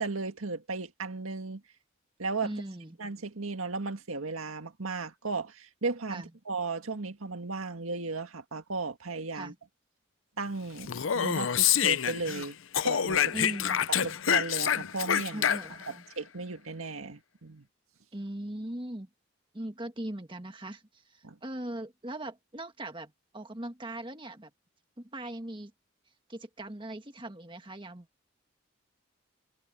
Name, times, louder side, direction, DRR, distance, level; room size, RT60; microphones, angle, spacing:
voice 1, 0.0-1.6 2.2-2.5 3.0-9.5 10.4-12.6 12.8-13.3 14.0-15.5 15.9-17.7 21.2-21.4, right 3 dB, 90° right, 1.9 m, -35 dB
voice 2, 2.4-3.0 6.1-6.3 9.3-9.5 13.3-13.8 15.3-16.1 18.1-19.1 19.5-20.8 21.1-24.5 25.0-25.7 26.3-28.1, right 1 dB, 25° right, 1.6 m, -39 dB
Speech, 10.8-12.5 12.7-15.9, left 9 dB, 70° left, 0.6 m, -27 dB
head